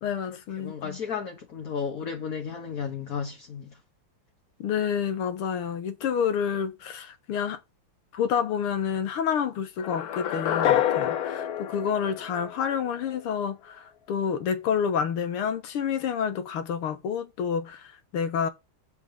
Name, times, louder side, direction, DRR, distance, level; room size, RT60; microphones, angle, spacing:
voice 1, 0.0-1.0 4.6-7.6 8.1-18.5, left 7 dB, 85° left, 2.1 m, -29 dB
voice 2, 0.5-3.8, left 6 dB, 45° left, 1.4 m, -33 dB
sound 1, 9.8-12.9, left 11 dB, 65° left, 1.0 m, -27 dB
7.3 x 5.0 x 6.2 m
omnidirectional pair, 2.4 m